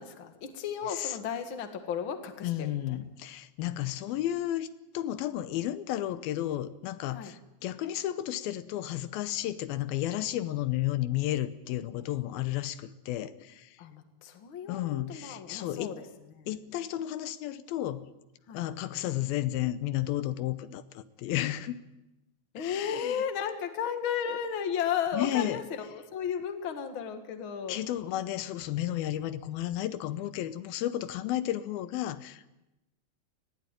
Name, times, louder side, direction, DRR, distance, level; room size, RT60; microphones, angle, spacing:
voice 1, 0.0-3.0 7.1-7.4 13.8-16.0 16.3-16.5 18.5-18.6 22.5-27.8, left 8 dB, 45° left, 6 dB, 2.0 m, -34 dB
voice 2, 2.4-4.7 4.9-13.8 14.7-15.9 16.5-18.1 18.5-21.8 22.6-23.2 25.1-25.6 27.7-32.5, left 13 dB, 85° left, 12 dB, 2.7 m, -32 dB
20.0 x 16.0 x 9.1 m, 0.95 s
omnidirectional pair, 4.2 m